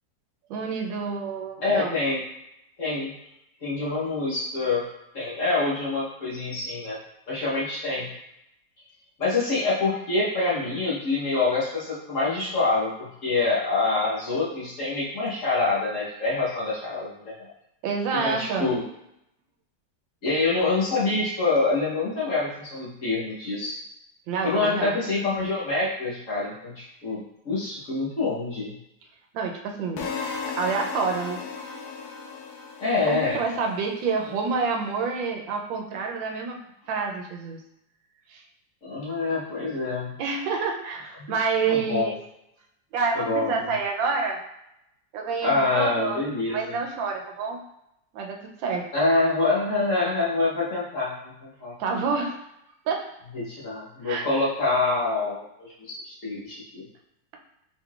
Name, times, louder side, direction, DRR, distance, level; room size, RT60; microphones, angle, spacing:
voice 1, 0.5-1.9 17.8-18.7 24.3-24.9 29.3-30.1 30.6-31.4 33.0-36.6 36.9-37.6 38.3-38.4 40.2-42.1 42.9-44.4 45.1-46.2 46.5-47.6 48.1-48.9 51.8-52.4 52.9-53.1 54.0-54.3, right 5 dB, 85° right, 2 dB, 1.4 m, -28 dB
voice 2, 1.6-2.2 2.8-3.1 3.6-4.8 5.1-7.0 7.3-8.1 9.2-17.5 18.1-18.8 20.2-23.8 24.4-27.2 27.4-28.8 32.8-33.4 38.8-40.1 41.2-42.1 43.1-43.7 45.4-46.8 48.9-51.1 51.4-51.8 53.3-56.8, left 3 dB, 50° left, -7 dB, 1.2 m, -26 dB
sound 1, 30.0-34.0, left 5 dB, 70° left, 1.0 m, -35 dB
4.5 x 3.6 x 2.3 m, 0.82 s
omnidirectional pair, 2.0 m